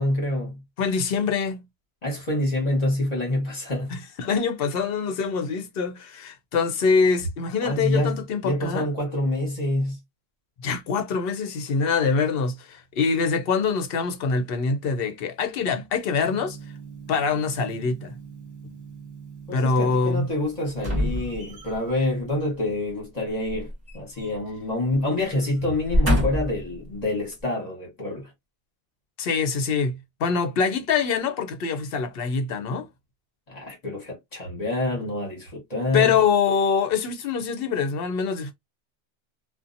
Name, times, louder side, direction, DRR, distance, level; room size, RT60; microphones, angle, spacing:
voice 1, 0.0-0.6 2.0-3.9 7.6-10.0 19.5-23.7 23.9-28.3 33.5-36.2, left 1 dB, 40° left, 1.2 m, -27 dB
voice 2, 0.8-1.6 3.9-8.9 10.6-16.6 17.1-18.2 19.5-20.3 29.2-32.9 35.9-38.5, left 5 dB, 65° left, 0.8 m, -24 dB
Gong, 16.2-22.0, right 6 dB, 20° left, 1.0 m, -43 dB
sound 1, 20.8-21.9 23.5-24.6 24.9-25.1 25.7-26.7 27.3-27.4, left 1 dB, 20° right, 0.9 m, -25 dB
2.7 x 2.2 x 2.5 m
omnidirectional pair, 1.1 m